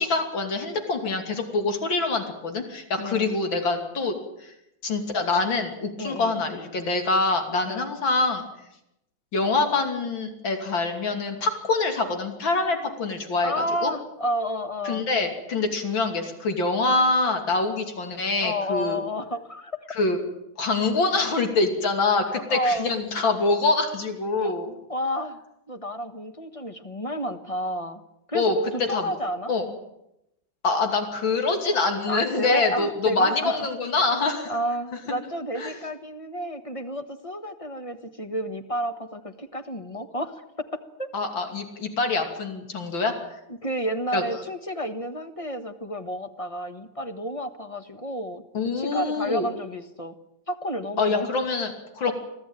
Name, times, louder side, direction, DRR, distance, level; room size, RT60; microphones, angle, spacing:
voice 1, 0.0-4.5 4.8-8.5 9.3-13.9 14.9-19.0 20.0-20.2 20.6-24.7 28.3-28.6 28.9-29.2 29.5-29.7 30.6-34.5 35.5-35.8 41.1-43.1 44.1-44.2 48.5-49.5 51.0-52.1, left 3 dB, 90° left, 4 dB, 3.5 m, -25 dB
voice 2, 3.0-3.3 6.0-6.4 7.7-7.9 13.4-15.1 18.4-19.8 22.5-22.9 24.4-24.6 24.9-25.4 25.7-28.0 28.3-29.5 32.1-33.7 34.5-41.1 43.5-48.4 48.7-50.1 50.5-51.3 52.0-52.1, equal, 20° left, 8 dB, 1.2 m, -31 dB
24.5 x 16.0 x 9.0 m, 0.85 s
omnidirectional pair, 2.1 m